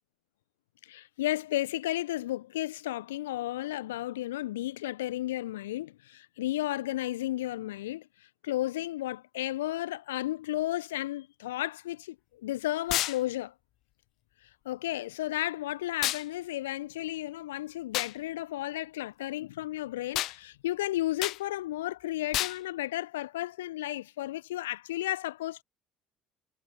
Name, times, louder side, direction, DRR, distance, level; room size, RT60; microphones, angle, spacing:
voice 1, 0.8-8.1 8.4-13.5 14.6-25.6, left 15 dB, 70° left, 1.3 m, -33 dB
sound 1, 12.9-13.2 16.0-16.2 17.9-18.1 20.1-20.4 21.2-21.4 22.3-22.6, left 16 dB, 55° left, 1.2 m, -29 dB
figure-of-eight pair, 55°, 0 cm